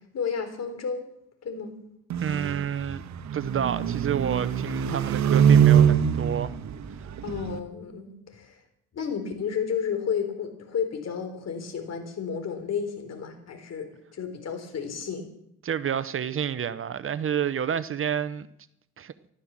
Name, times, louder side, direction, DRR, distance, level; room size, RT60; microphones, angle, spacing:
voice 1, 0.1-1.0 1.4-1.7 7.2-8.6 8.9-15.3, left 6 dB, 60° left, 3.8 m, -32 dB
sound 1, 2.1-7.6, right 8 dB, 70° right, 1.3 m, -23 dB
voice 2, 2.2-3.0 3.3-6.5 15.6-18.5 19.0-19.1, right 8 dB, 45° right, 0.8 m, -29 dB
14.5 x 13.0 x 7.4 m
cardioid pair, 90°, 30 cm